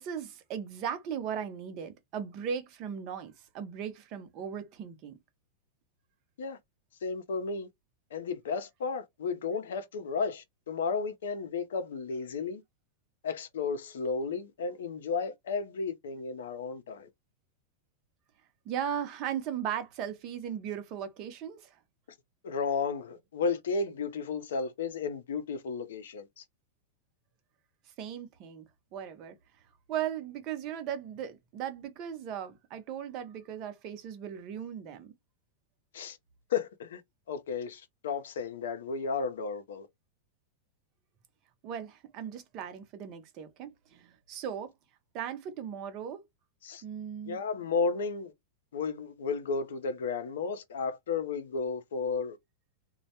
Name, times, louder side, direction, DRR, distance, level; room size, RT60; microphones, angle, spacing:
voice 1, 0.0-5.2 18.7-21.7 28.0-28.7 28.9-29.4 29.9-35.1 41.6-44.7 45.1-46.2 46.8-47.4, right 8 dB, 40° right, 0.7 m, -37 dB
voice 2, 7.0-7.7 8.1-12.6 13.2-17.1 22.4-26.4 35.9-36.2 36.5-37.0 37.3-39.9 46.6-46.8 47.3-48.3 48.7-52.4, left 5 dB, 85° left, 0.6 m, -33 dB
2.2 x 2.1 x 2.8 m
supercardioid pair, 135°, 0 cm